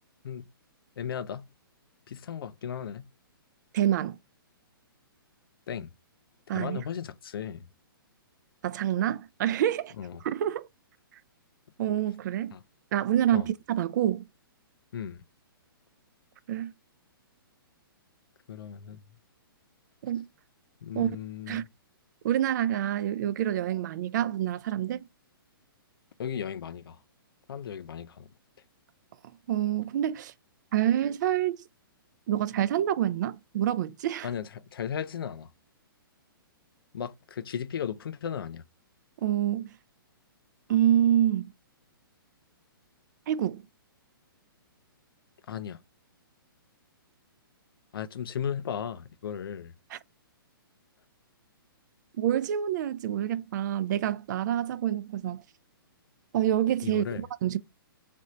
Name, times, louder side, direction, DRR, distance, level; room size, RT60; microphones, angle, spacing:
voice 1, 1.0-1.4 2.1-3.0 5.7-5.9 6.5-7.7 10.0-10.2 12.5-12.6 13.3-13.4 14.9-15.2 18.5-19.0 20.8-21.7 26.2-27.0 27.5-28.3 34.2-35.5 36.9-38.6 45.5-45.8 47.9-49.7 56.8-57.2, left 8 dB, 75° left, 0.4 m, -36 dB
voice 2, 3.7-4.2 6.5-6.8 8.6-9.9 10.2-10.7 11.8-12.6 12.9-14.2 16.5-16.7 20.0-20.3 21.0-21.1 21.5-21.6 22.2-25.1 29.5-30.3 30.7-31.6 32.3-34.3 39.2-39.7 40.7-41.5 43.3-43.6 49.9-50.0 52.2-55.4 56.3-57.6, right 11 dB, 50° right, 0.4 m, -27 dB
3.4 x 2.6 x 4.2 m
hypercardioid pair, 135°, 12 cm